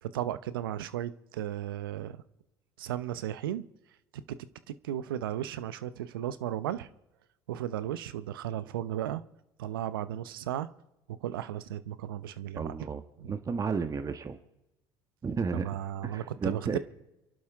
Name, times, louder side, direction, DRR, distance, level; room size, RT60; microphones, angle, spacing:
voice 1, 0.0-2.2 2.8-3.6 4.1-6.9 7.5-9.2 9.6-10.7 11.2-12.7 13.2-13.3 15.5-16.8, right 11 dB, 80° right, 15 dB, 0.9 m, -35 dB
voice 2, 12.6-14.4 15.2-15.7 16.0-16.8, right 5 dB, 30° right, 9 dB, 1.4 m, -33 dB
29.0 x 11.5 x 3.6 m, 0.96 s
hypercardioid pair, 65°, 12 cm